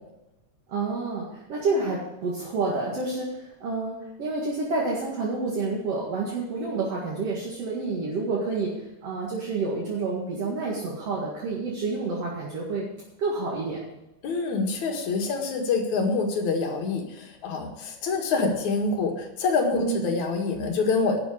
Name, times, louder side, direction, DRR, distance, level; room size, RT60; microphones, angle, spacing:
voice 1, 0.7-12.9 13.2-13.8 19.7-20.0, right 3 dB, 55° right, -3 dB, 2.9 m, -29 dB
voice 2, 14.2-21.2, left 4 dB, 75° left, 2 dB, 3.1 m, -26 dB
11.5 x 6.9 x 8.5 m, 0.94 s
omnidirectional pair, 3.4 m